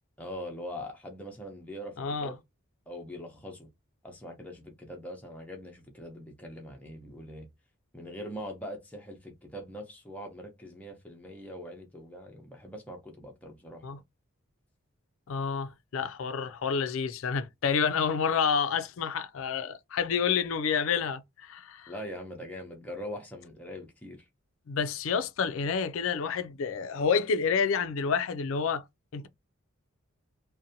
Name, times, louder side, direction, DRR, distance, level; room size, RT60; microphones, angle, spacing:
voice 1, 0.2-2.4 2.9-3.7 4.0-7.5 7.9-13.8 21.9-24.2, equal, 5° left, 0.6 m, -42 dB
voice 2, 2.0-2.3 13.8-14.0 15.3-21.9 24.7-28.8 29.1-29.3, left 6 dB, 75° left, 0.4 m, -29 dB
2.6 x 2.1 x 2.7 m
head